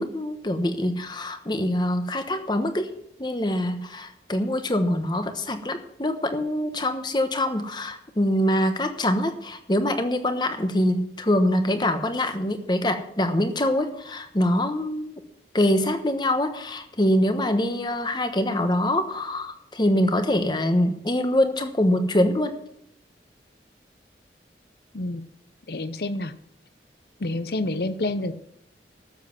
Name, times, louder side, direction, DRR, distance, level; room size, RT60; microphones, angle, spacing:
voice 1, 0.0-2.9 3.2-15.1 15.5-22.6, left 1 dB, 25° left, 8 dB, 1.0 m, -24 dB
voice 2, 25.7-26.3 27.2-28.3, left 2 dB, 60° left, 12 dB, 0.8 m, -28 dB
12.5 x 7.5 x 5.9 m, 0.78 s
head